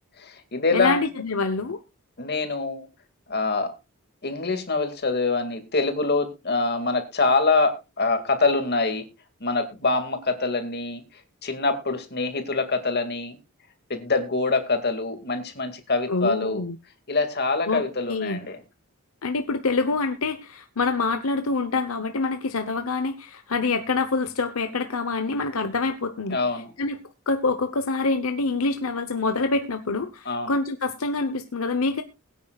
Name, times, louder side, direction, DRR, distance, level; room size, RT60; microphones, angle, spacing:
voice 1, 0.2-1.0 2.2-2.9 3.3-3.7 4.2-9.0 9.4-11.0 11.4-13.4 13.9-16.6 17.1-18.6 26.3-26.7 30.3-30.5, left 3 dB, 50° left, 7 dB, 2.3 m, -25 dB
voice 2, 0.7-1.8 16.1-16.8 17.7-17.8 18.1-18.4 19.2-26.4 26.8-27.0 27.3-32.0, left 3 dB, 80° left, 8 dB, 1.0 m, -26 dB
21.5 x 9.4 x 2.4 m, 0.27 s
head